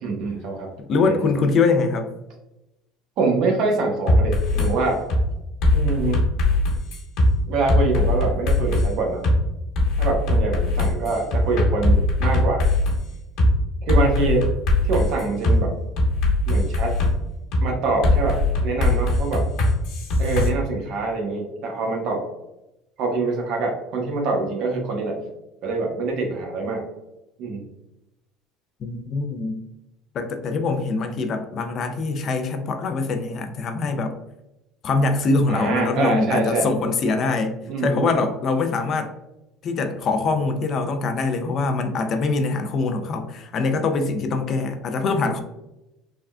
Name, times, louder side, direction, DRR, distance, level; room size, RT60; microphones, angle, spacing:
voice 1, 0.0-1.3 3.2-5.0 5.7-6.2 7.5-9.2 10.0-12.6 13.8-14.5 14.8-15.7 16.5-17.0 17.6-19.5 20.2-22.2 23.0-25.2 25.6-26.8 27.4-27.6 35.5-36.7 37.7-38.1, right 3 dB, 60° right, 1 dB, 0.8 m, -25 dB
voice 2, 0.8-2.1 28.8-29.6 30.1-34.2 34.8-39.1 39.6-45.4, left 3 dB, 45° left, 7 dB, 0.4 m, -23 dB
sound 1, 4.1-4.7 5.1-5.2 5.6-7.3 7.7-8.9 9.2-9.4 9.7-13.0 13.4-13.5 13.9-15.6 16.0-17.1 17.5-17.6 18.0-20.5, left 2 dB, 65° left, 1.1 m, -20 dB
3.5 x 2.2 x 2.2 m, 0.93 s
cardioid pair, 120°, 0 cm